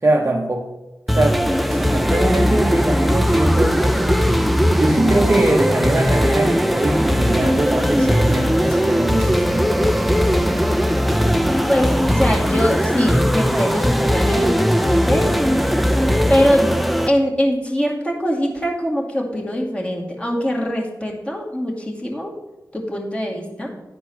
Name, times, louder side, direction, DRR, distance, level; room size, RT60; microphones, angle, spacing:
voice 1, 0.0-0.7 1.1-1.4 1.7-4.1 4.7-9.7, right 2 dB, 35° right, 0 dB, 0.8 m, -22 dB
sound 1, 1.1-17.1, equal, ahead, 0.6 m, -18 dB
voice 2, 11.7-15.3 16.3-16.8 17.1-22.3 22.7-23.8, equal, 15° left, -1 dB, 2.2 m, -22 dB
10.5 x 4.5 x 5.8 m, 1.1 s
wide cardioid pair, 65°, 7 cm